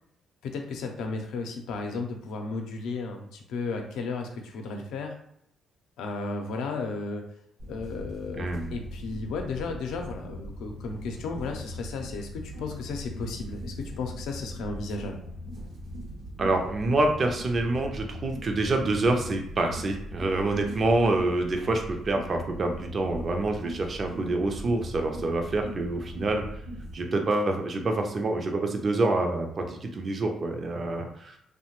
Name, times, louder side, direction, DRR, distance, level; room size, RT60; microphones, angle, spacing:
voice 1, 0.4-5.1 6.0-7.2 7.7-15.1, left 3 dB, 85° left, 3 dB, 0.5 m, -34 dB
sound 1, 7.6-26.9, equal, 75° right, 0.8 m, -40 dB
voice 2, 8.4-8.7 16.4-26.4 26.9-31.4, right 2 dB, 40° right, 3 dB, 0.4 m, -27 dB
2.8 x 2.1 x 2.9 m, 0.72 s
cardioid pair, 90°, 0 cm